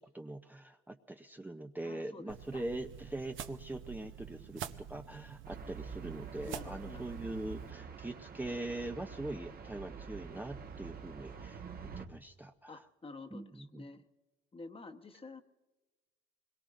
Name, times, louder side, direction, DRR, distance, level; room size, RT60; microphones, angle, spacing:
voice 1, 0.1-11.6 12.0-12.8 13.3-13.8, right 2 dB, 10° right, 4 dB, 0.6 m, -42 dB
voice 2, 1.8-2.6 6.4-7.2 12.7-14.0 14.5-15.4, left 3 dB, 30° left, 7 dB, 1.1 m, -49 dB
sound 1, 2.3-7.7, right 9 dB, 75° right, 0.8 m, -47 dB
sound 2, 5.4-12.1, right 6 dB, 50° right, 1.3 m, -47 dB
26.0 x 21.5 x 2.6 m, 1.2 s
cardioid pair, 90°, 20 cm